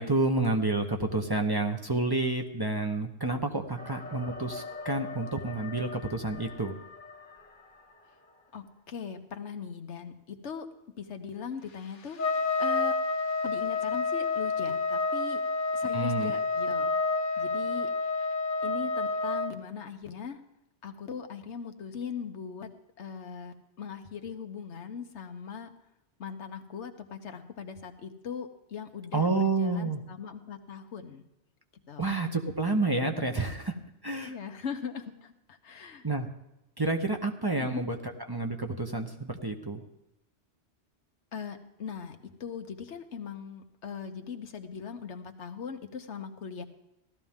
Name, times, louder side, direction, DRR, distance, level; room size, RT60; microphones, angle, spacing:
voice 1, 0.0-6.7 15.9-16.3 29.1-30.0 32.0-33.8 34.0-34.3 36.0-36.3 36.8-39.8, right 2 dB, 25° right, 3 dB, 0.8 m, -29 dB
sound 1, 3.8-8.6, left 4 dB, 10° left, 1.2 m, -44 dB
voice 2, 8.5-10.7 11.0-12.9 13.4-15.4 15.7-16.9 17.4-17.9 18.6-20.4 20.8-22.7 23.0-25.7 26.2-31.3 31.9-32.1 34.2-36.0 37.6-37.8 41.3-46.6, left 6 dB, 90° left, 7 dB, 1.3 m, -40 dB
Trumpet, 12.2-19.5, left 3 dB, 50° left, 1.0 m, -29 dB
16.5 x 13.0 x 3.6 m, 0.90 s
omnidirectional pair, 1.1 m